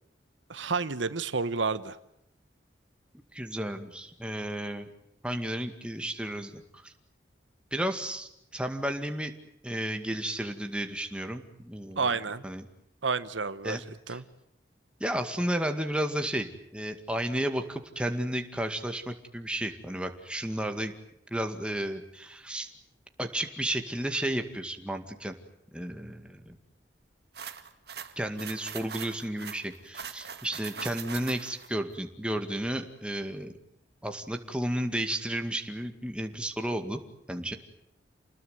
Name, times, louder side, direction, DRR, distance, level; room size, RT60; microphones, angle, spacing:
voice 1, 0.5-2.0 12.0-12.4 13.0-14.2, right 4 dB, 85° right, 13 dB, 1.2 m, -30 dB
voice 2, 3.3-4.9 5.2-6.9 7.7-9.3 9.6-12.2 12.4-12.6 13.6-13.8 14.1-14.2 15.0-20.9 21.3-22.7 23.2-25.4 25.7-26.6 28.2-33.5 34.0-37.0 37.3-37.6, right 1 dB, 5° right, 5 dB, 2.1 m, -33 dB
sound 1, 27.4-31.7, right 7 dB, 60° right, 1.9 m, -41 dB
29.5 x 20.0 x 9.5 m, 0.79 s
head